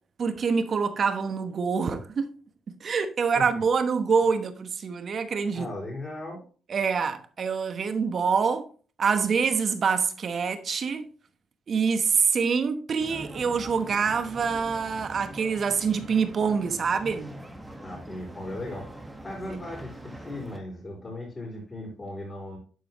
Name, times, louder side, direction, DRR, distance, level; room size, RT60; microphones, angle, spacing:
voice 1, 0.2-2.4 2.7-5.7 6.7-8.7 9.0-11.0 11.7-17.4, right 5 dB, 50° right, 1.0 m, -26 dB
voice 2, 5.5-6.4 17.8-22.6, left 1 dB, 30° left, 4.0 m, -37 dB
sound 1, 13.0-20.6, right 1 dB, 10° right, 1.4 m, -43 dB
11.5 x 4.7 x 3.0 m
cardioid pair, 90°, 0 cm